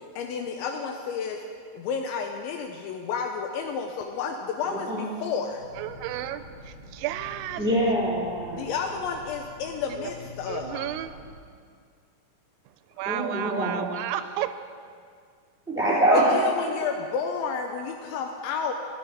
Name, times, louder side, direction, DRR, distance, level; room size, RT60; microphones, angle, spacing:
voice 1, 0.2-1.4 1.7-5.6 8.5-10.9 16.3-18.7, left 6 dB, 80° left, 4 dB, 2.8 m, -31 dB
voice 2, 4.7-5.1 7.6-8.7 13.0-13.9 15.7-16.3, right 1 dB, 5° right, -7 dB, 2.5 m, -24 dB
sound 1, 5.6-11.4, left 2 dB, 55° left, 3.0 m, -46 dB
voice 3, 5.8-7.6 10.0-10.1 10.5-11.1 13.0-14.5, right 12 dB, 90° right, 11 dB, 3.2 m, -32 dB
13.5 x 11.5 x 4.9 m, 2.2 s
omnidirectional pair, 5.8 m